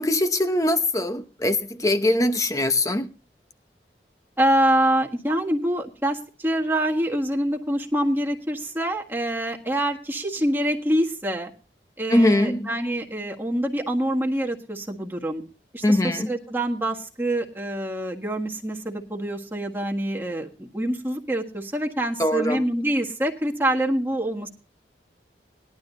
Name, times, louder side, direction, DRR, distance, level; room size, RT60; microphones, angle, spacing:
voice 1, 0.0-3.1 12.1-12.7 15.8-16.3 22.2-22.6, left 1 dB, 20° left, 9 dB, 0.9 m, -22 dB
voice 2, 4.4-11.5 12.0-15.4 15.7-16.0 16.3-24.5, right 1 dB, 10° right, 0 dB, 1.6 m, -25 dB
20.0 x 12.0 x 2.7 m, 0.36 s
head